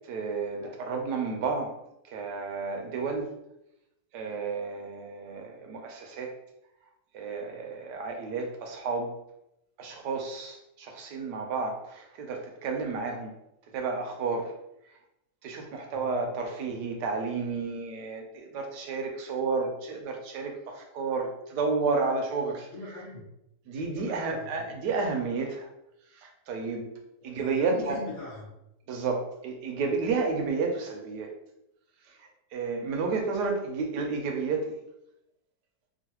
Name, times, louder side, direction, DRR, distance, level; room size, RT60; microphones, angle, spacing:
voice 1, 0.1-1.8 2.0-3.3 4.1-6.3 7.1-9.1 9.8-13.3 13.7-14.5 15.4-22.7 23.7-25.7 26.1-26.9 27.2-28.0 28.9-31.3 32.1-34.7, right 4 dB, 85° right, 3 dB, 1.2 m, -31 dB
voice 2, 15.9-16.3 22.7-23.2 23.9-24.7 27.4-28.5, left 2 dB, 35° left, -7 dB, 1.1 m, -40 dB
3.0 x 2.5 x 2.8 m, 0.84 s
omnidirectional pair, 1.8 m